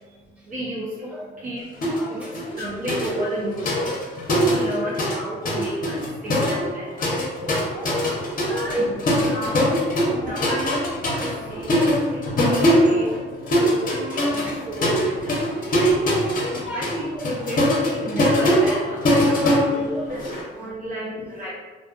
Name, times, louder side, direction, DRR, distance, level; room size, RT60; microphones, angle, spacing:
voice 1, 0.3-7.6 8.5-8.8 9.0-9.7 10.2-13.2 13.5-16.3 16.7-21.5, equal, 40° right, -7 dB, 0.6 m, -33 dB
sound 1, 1.8-2.1 2.3-5.2 5.4-20.4, equal, 45° left, 0.7 m, -22 dB
voice 2, 1.9-2.3 5.4-5.6 7.0-9.5 10.0-10.4 11.4-11.8 14.5-14.6 16.5-16.9 18.6-18.8 19.3-19.4 21.1-21.5, equal, 5° right, -9 dB, 1.2 m, -34 dB
2.6 x 2.3 x 2.4 m, 1.4 s
cardioid pair, 90°, 20 cm